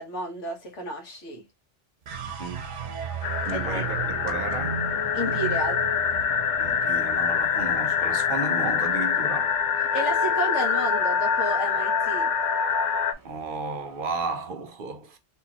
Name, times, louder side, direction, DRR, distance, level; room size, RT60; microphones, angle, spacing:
voice 1, 0.0-1.4 3.5-3.8 5.1-5.8 9.9-12.3, right 1 dB, 85° left, 1.5 m, -32 dB
sound 1, 2.1-8.4, right 7 dB, 85° right, 1.1 m, -36 dB
sound 2, 3.2-13.1, left 6 dB, 60° left, 0.5 m, -25 dB
sound 3, 3.4-14.3, left 3 dB, 30° right, 0.3 m, -42 dB
voice 2, 3.5-4.9 6.6-9.5 13.2-15.2, right 4 dB, 55° right, 0.8 m, -33 dB
3.4 x 2.9 x 2.8 m
omnidirectional pair, 1.2 m